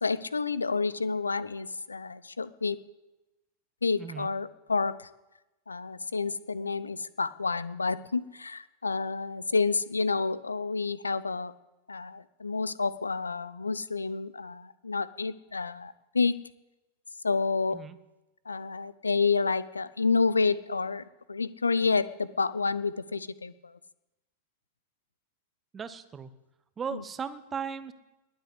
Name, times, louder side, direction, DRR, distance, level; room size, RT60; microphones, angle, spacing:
voice 1, 0.0-2.8 3.8-5.1 5.7-11.5 11.9-16.3 17.2-17.8 18.5-23.7 26.9-27.0, left 4 dB, 75° left, 18 dB, 0.6 m, -29 dB
voice 2, 4.0-4.3 17.7-18.0 25.7-26.3 26.8-27.9, right 6 dB, 20° right, 13 dB, 1.0 m, -37 dB
21.0 x 8.1 x 8.1 m, 1.0 s
figure-of-eight pair, 90°, 0 cm